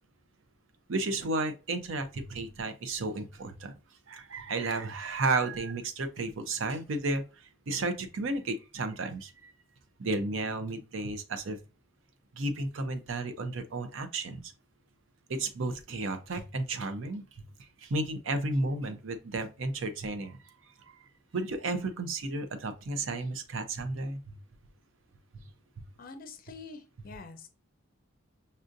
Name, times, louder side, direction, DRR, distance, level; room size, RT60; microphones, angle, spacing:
voice 1, 0.9-3.7 4.1-7.2 7.7-9.5 10.0-11.6 12.3-14.4 15.3-17.2 17.8-20.4 21.3-24.2, right 2 dB, 65° right, 0.5 m, -33 dB
voice 2, 26.0-27.5, left 4 dB, 40° left, 0.5 m, -46 dB
5.4 x 2.5 x 2.5 m
head